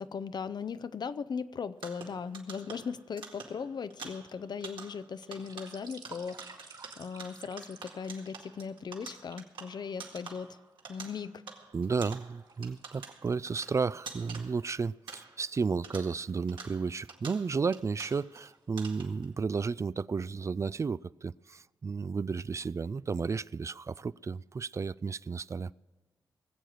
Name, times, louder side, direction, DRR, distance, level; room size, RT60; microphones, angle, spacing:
voice 1, 0.0-10.6 10.9-11.4, left 6 dB, 60° left, 0.6 m, -38 dB
sound 1, 1.7-15.6 15.8-18.5 18.8-19.3, right 4 dB, 75° right, 1.9 m, -48 dB
sound 2, 5.2-8.8 9.3-9.5 10.2-11.0 11.5-14.4 14.7-14.8 15.2-15.4 15.8-16.0 16.9-17.4 17.9-18.1 18.4-19.1 19.4-19.5, right 4 dB, 60° right, 2.4 m, -53 dB
voice 2, 11.7-25.7, right 5 dB, 35° right, 0.3 m, -33 dB
19.5 x 7.7 x 6.5 m
cardioid pair, 60°, 8 cm